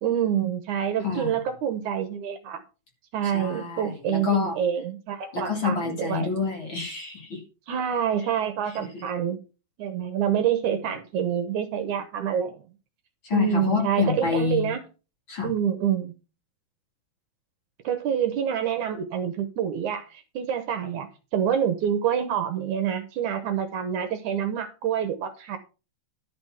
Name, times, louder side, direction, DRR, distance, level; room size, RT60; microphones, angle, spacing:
voice 1, 0.0-2.6 3.1-6.3 7.7-9.4 9.8-12.6 13.3-14.8 15.4-16.1 17.8-25.6, right 9 dB, 70° right, 2.3 m, -27 dB
voice 2, 1.0-1.4 3.2-4.6 5.3-7.4 13.2-14.7 15.3-15.5, left 5 dB, 40° left, 2.7 m, -27 dB
11.5 x 5.2 x 5.8 m
omnidirectional pair, 3.9 m